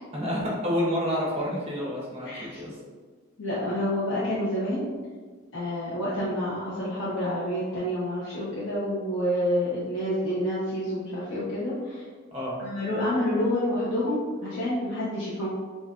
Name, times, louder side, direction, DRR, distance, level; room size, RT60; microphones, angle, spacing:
voice 1, 0.1-2.8 12.3-12.5, equal, 30° right, -4 dB, 1.0 m, -29 dB
voice 2, 2.3-2.6 3.4-4.8 5.5-12.0 12.6-15.5, left 1 dB, 70° left, -9 dB, 0.9 m, -28 dB
5.4 x 2.5 x 2.4 m, 1.5 s
head